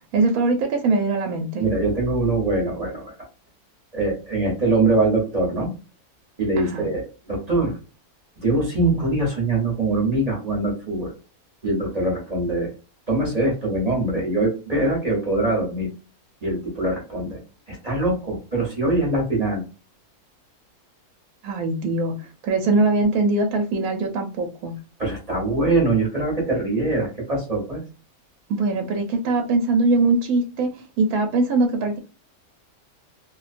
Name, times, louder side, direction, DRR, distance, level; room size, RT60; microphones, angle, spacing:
voice 1, 0.1-1.6 6.6-6.9 21.4-24.7 28.5-32.0, right 3 dB, 75° right, 3 dB, 1.0 m, -22 dB
voice 2, 1.6-3.1 3.9-5.7 6.4-7.8 8.4-11.1 11.6-12.7 13.1-15.9 16.4-17.4 17.7-19.6 25.0-27.8, right 2 dB, 35° right, -2 dB, 0.8 m, -23 dB
2.5 x 2.1 x 2.4 m, 0.32 s
omnidirectional pair, 1.6 m